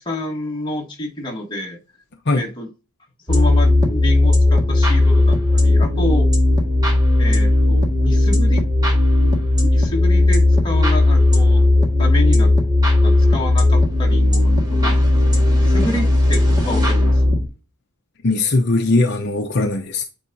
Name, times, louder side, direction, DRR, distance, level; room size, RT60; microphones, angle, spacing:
voice 1, 0.0-1.8 2.3-2.7 3.3-6.3 7.2-8.6 9.2-9.3 9.6-11.6 12.0-12.6 13.0-15.0 15.5-17.4, left 1 dB, 20° left, 1.6 m, -28 dB
sound 1, 3.3-17.5, left 2 dB, 20° right, 1.8 m, -15 dB
voice 2, 18.2-20.1, left 2 dB, 50° left, 0.8 m, -19 dB
8.9 x 4.6 x 2.7 m
head